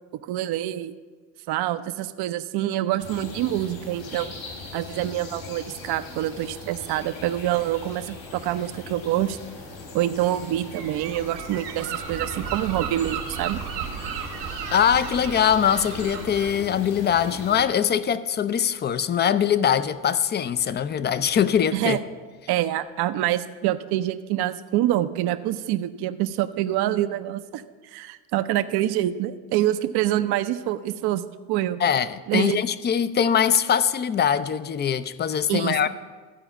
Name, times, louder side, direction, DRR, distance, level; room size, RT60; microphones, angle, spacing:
voice 1, 0.3-0.9 1.5-4.3 4.7-9.4 9.9-13.6 21.7-22.0 22.5-27.6 27.9-31.8 32.3-32.6 35.5-35.9, right 13 dB, 55° right, 0.6 m, -26 dB
sound 1, 3.0-17.6, left 3 dB, 70° left, 3.7 m, -40 dB
Gull seagull, 10.7-16.5, right 8 dB, 90° right, 1.6 m, -34 dB
voice 2, 14.7-22.0 31.8-35.9, left 8 dB, 25° left, 0.4 m, -22 dB
13.5 x 4.9 x 7.1 m
hypercardioid pair, 65°, 48 cm